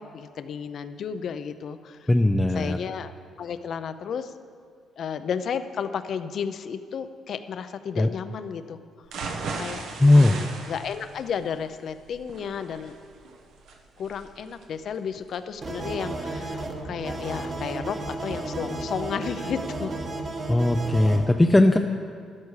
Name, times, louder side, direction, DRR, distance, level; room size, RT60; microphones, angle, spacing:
voice 1, 0.0-2.1 2.5-3.1 3.4-4.3 5.0-8.8 9.6-9.8 10.1-13.0 14.0-19.9, left 7 dB, 55° left, 11 dB, 0.6 m, -33 dB
voice 2, 2.1-2.8 8.0-8.1 10.0-10.4 20.5-21.8, left 1 dB, 10° left, 4 dB, 0.4 m, -18 dB
sound 1, 9.0-17.0 17.4-17.5 17.9-18.0, right 4 dB, 70° right, 1.2 m, -39 dB
sound 2, 15.6-21.3, right 2 dB, 35° right, 1.4 m, -33 dB
13.0 x 12.0 x 4.8 m, 2.2 s
cardioid pair, 150°, 0 cm